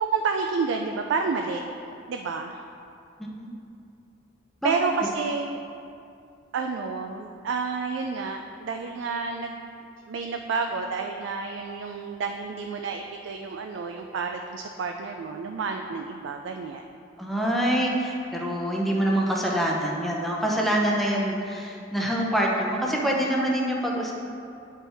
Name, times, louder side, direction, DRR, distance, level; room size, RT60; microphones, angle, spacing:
voice 1, 0.0-1.6 2.1-2.6 4.6-5.6 6.5-9.6 10.1-16.8, right 4 dB, 70° right, 4 dB, 0.3 m, -30 dB
voice 2, 3.2-3.5 4.6-4.7 17.2-24.1, right 1 dB, ahead, -3 dB, 0.7 m, -25 dB
9.0 x 4.4 x 3.4 m, 2.6 s
head